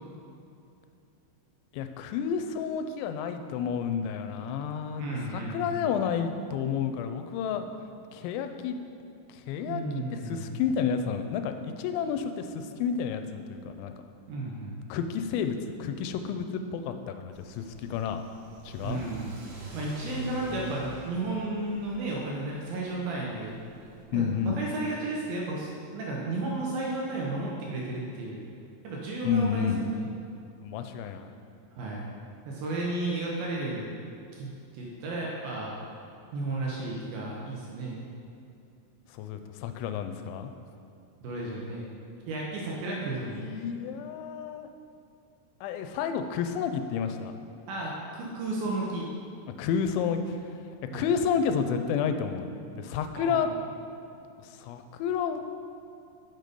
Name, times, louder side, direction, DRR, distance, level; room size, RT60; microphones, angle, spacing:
voice 1, 1.7-7.7 8.1-8.8 9.3-13.9 14.9-17.7 17.9-18.2 18.7-19.0 24.1-24.6 29.2-29.8 30.6-31.3 39.1-40.5 43.2-44.7 45.6-47.3 49.6-50.4 50.9-53.5 54.4-55.4, left 7 dB, 85° left, 8 dB, 2.8 m, -30 dB
voice 2, 5.0-5.7 9.7-10.5 14.3-14.8 18.8-19.4 19.7-23.6 24.1-28.4 28.8-30.1 31.8-32.0 32.5-33.9 34.4-35.8 36.3-38.0 41.2-41.9 42.3-43.4 47.7-49.1 50.9-51.1 53.1-53.5, right 2 dB, 85° right, -3 dB, 2.0 m, -33 dB
Car / Accelerating revving vroom, 17.3-24.0, equal, 65° right, 2.5 m, -45 dB
6.6 x 6.1 x 5.2 m, 2.5 s
omnidirectional pair, 5.4 m